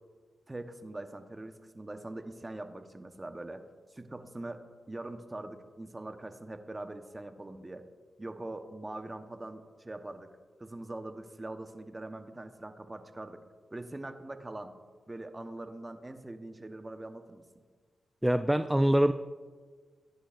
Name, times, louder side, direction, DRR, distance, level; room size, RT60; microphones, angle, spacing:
voice 1, 0.5-3.6 3.9-7.8 8.2-10.3 10.6-13.4 13.7-14.7 15.1-17.4, right 2 dB, 25° right, 7 dB, 1.1 m, -42 dB
voice 2, 18.2-19.1, right 1 dB, 10° right, 10 dB, 0.4 m, -24 dB
17.5 x 10.0 x 2.6 m, 1.5 s
cardioid pair, 55°, 0 cm